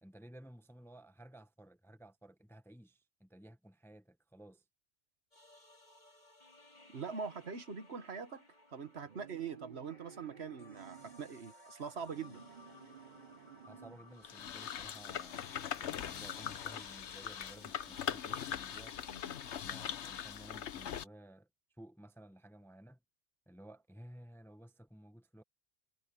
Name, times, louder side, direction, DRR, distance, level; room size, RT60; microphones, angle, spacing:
voice 1, 0.0-4.6 13.7-18.9 19.6-21.5 21.8-23.0 23.5-25.4, right 1 dB, ahead, 0.8 m, -55 dB
sound 1, 5.3-19.9, left 1 dB, 40° left, 5.4 m, -60 dB
voice 2, 6.9-8.4 8.7-12.4, right 6 dB, 70° right, 1.5 m, -43 dB
sound 2, 9.0-11.3 11.9-14.1, right 9 dB, 50° right, 0.7 m, -56 dB
sound 3, 14.2-21.0, left 9 dB, 80° left, 1.1 m, -41 dB
omnidirectional pair, 1.1 m